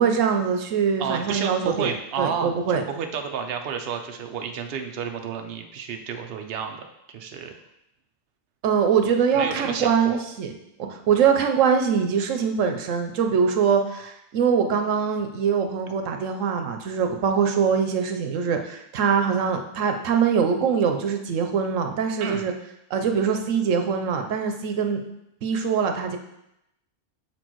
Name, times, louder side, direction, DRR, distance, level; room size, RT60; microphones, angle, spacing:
voice 1, 0.0-2.8 8.6-10.5 10.8-22.5 22.9-25.0 25.4-26.2, right 6 dB, 90° right, 5 dB, 1.1 m, -23 dB
voice 2, 1.0-7.5 9.3-10.2 22.2-22.5, right 6 dB, 55° right, 5 dB, 0.8 m, -31 dB
6.8 x 4.4 x 4.5 m, 0.82 s
omnidirectional pair, 1.3 m